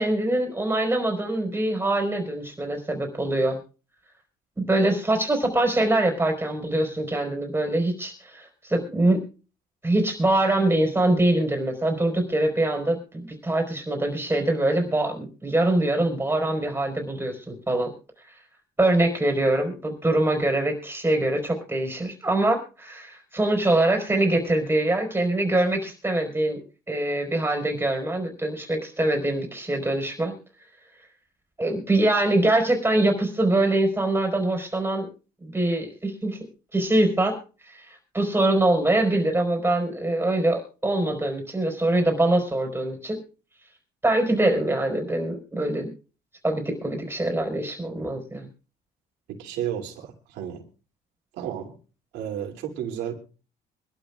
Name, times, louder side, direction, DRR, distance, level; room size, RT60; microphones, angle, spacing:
voice 1, 0.0-3.6 4.6-9.2 9.8-17.9 18.8-26.6 26.9-30.3 31.6-35.1 35.4-36.4 36.7-37.4 37.7-43.2 44.0-45.9 46.4-48.5, right 1 dB, 15° right, 3 dB, 4.7 m, -24 dB
voice 2, 49.3-50.6 51.4-51.7 52.1-53.1, right 10 dB, 90° right, 1 dB, 2.8 m, -32 dB
25.0 x 12.0 x 2.4 m, 0.35 s
cardioid pair, 110°, 17 cm